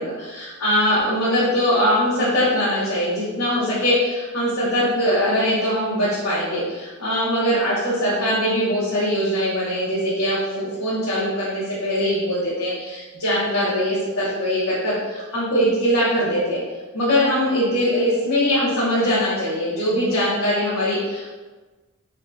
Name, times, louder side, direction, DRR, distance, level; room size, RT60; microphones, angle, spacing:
voice 1, 0.0-16.6 16.9-21.3, equal, 80° left, -10 dB, 0.9 m, -22 dB
3.5 x 2.2 x 2.6 m, 1.3 s
head